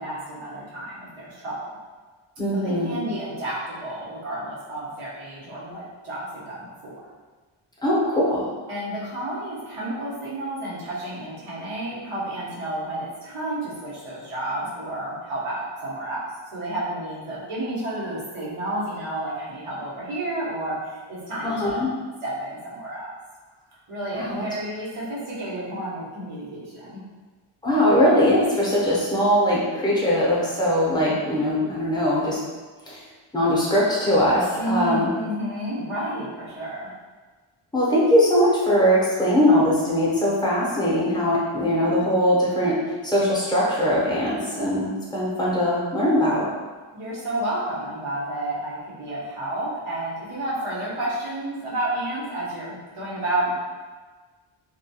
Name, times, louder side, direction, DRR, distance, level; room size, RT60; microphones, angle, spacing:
voice 1, 0.0-1.8 2.5-7.0 8.7-21.8 22.2-23.1 23.9-27.0 34.6-36.9 46.9-53.5, right 1 dB, 90° right, -8 dB, 1.0 m, -31 dB
voice 2, 2.4-2.9 7.8-8.5 21.4-21.9 24.1-24.5 27.6-32.4 32.9-33.0 33.3-35.1 37.7-46.4, equal, 10° left, -7 dB, 0.6 m, -21 dB
2.3 x 2.2 x 2.7 m, 1.4 s
wide cardioid pair, 150°, 50 cm